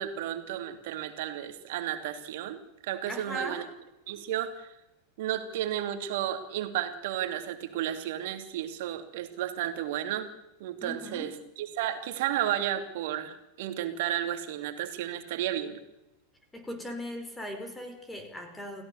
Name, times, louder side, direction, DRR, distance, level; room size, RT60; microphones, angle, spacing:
voice 1, 0.0-3.6 4.1-4.7 5.2-10.3 10.6-15.8, right 11 dB, 50° right, 8 dB, 2.8 m, -33 dB
voice 2, 3.1-3.7 10.8-11.3 16.5-18.8, equal, 10° left, 6 dB, 5.0 m, -38 dB
29.5 x 17.0 x 7.0 m, 0.97 s
figure-of-eight pair, 90°, 0 cm